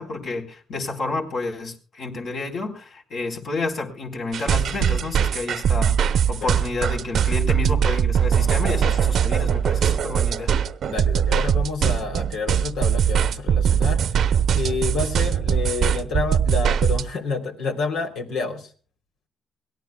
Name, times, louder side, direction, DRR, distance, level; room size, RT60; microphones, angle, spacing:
voice 1, 0.0-10.5, left 3 dB, 60° left, 2 dB, 4.2 m, -30 dB
sound 1, 4.3-17.0, right 8 dB, 65° right, 0.9 m, -21 dB
voice 2, 10.8-14.1 14.5-18.7, left 4 dB, 85° left, 5 dB, 3.2 m, -29 dB
24.5 x 17.5 x 2.3 m, 0.38 s
cardioid pair, 90°, 0 cm